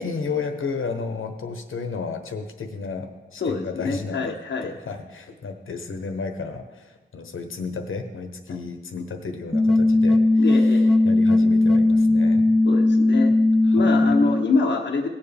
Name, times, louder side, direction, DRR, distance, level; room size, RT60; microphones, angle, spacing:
voice 1, 0.0-12.5 13.6-14.2, left 4 dB, 80° left, 6 dB, 1.1 m, -33 dB
voice 2, 3.4-4.7 10.4-11.0 12.7-13.3 13.7-15.1, left 4 dB, 60° left, 1 dB, 0.8 m, -25 dB
sound 1, 9.5-14.5, left 2 dB, ahead, 0.5 m, -18 dB
17.5 x 7.3 x 3.4 m, 1.2 s
wide cardioid pair, 140°, 21 cm